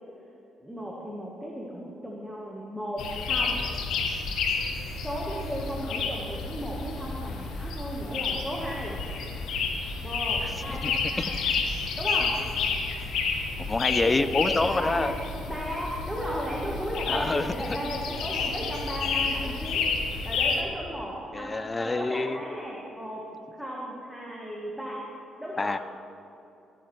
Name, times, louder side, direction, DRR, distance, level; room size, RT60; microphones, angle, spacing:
voice 1, 0.6-3.6 5.0-9.0 10.0-11.4 12.0-12.3 14.0-15.1 15.4-19.9 20.2-23.2 23.5-25.0 25.4-25.8, equal, 5° right, -3 dB, 1.3 m, -35 dB
sound 1, 3.0-20.6, left 4 dB, 80° left, 0.9 m, -30 dB
voice 2, 10.4-11.1 13.6-15.1 17.1-17.8 21.3-22.4 25.6-25.8, left 3 dB, 25° left, 12 dB, 0.4 m, -27 dB
13.5 x 8.6 x 3.2 m, 2.8 s
cardioid pair, 90°, 0 cm